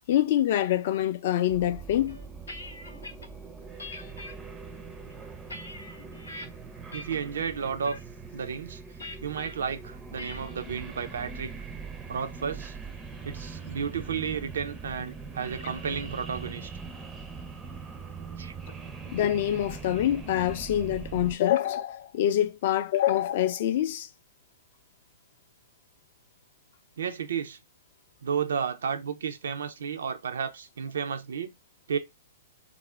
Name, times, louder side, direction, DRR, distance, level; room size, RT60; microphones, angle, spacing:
voice 1, 0.1-2.2 19.1-24.1, left 12 dB, 55° left, 0.4 m, -25 dB
sound 1, 1.5-21.4, right 5 dB, 15° right, 0.4 m, -42 dB
sound 2, 2.1-3.3 3.8-4.3 4.9-6.5 6.9-7.3 7.6-8.0 9.0-9.5 10.2-10.5, left 2 dB, 90° left, 0.7 m, -43 dB
voice 2, 6.9-8.0 8.3-8.8 9.2-11.5 12.1-12.8 13.2-16.7 18.4-18.5 27.0-27.6 28.2-31.5 31.9-32.0, right 6 dB, 75° right, 0.4 m, -32 dB
2.5 x 2.0 x 3.2 m
hypercardioid pair, 120°, 0 cm